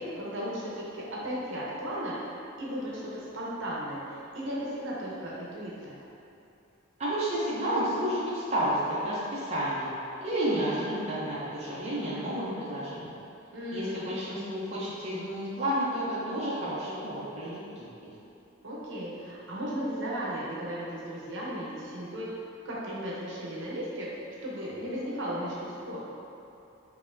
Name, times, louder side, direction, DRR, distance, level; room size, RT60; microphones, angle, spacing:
voice 1, 0.0-6.0 13.5-14.1 18.6-26.1, equal, 65° right, -6 dB, 0.8 m, -36 dB
voice 2, 7.0-9.9 10.2-13.1 13.7-17.9, right 1 dB, 30° right, -10 dB, 0.6 m, -31 dB
5.2 x 2.7 x 2.6 m, 2.8 s
head